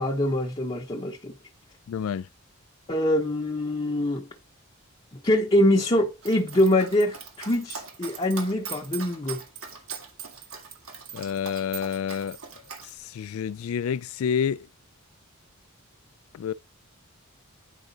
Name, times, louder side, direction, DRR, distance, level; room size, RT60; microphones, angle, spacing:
voice 1, 0.0-1.3 2.9-4.2 5.2-9.4, left 1 dB, 25° left, 0.8 m, -24 dB
voice 2, 1.9-2.3 11.1-12.4 13.0-14.7 16.3-16.5, left 7 dB, 70° left, 0.3 m, -28 dB
Dog, 6.2-12.9, right 6 dB, 75° right, 1.9 m, -40 dB
9.1 x 4.9 x 3.9 m
head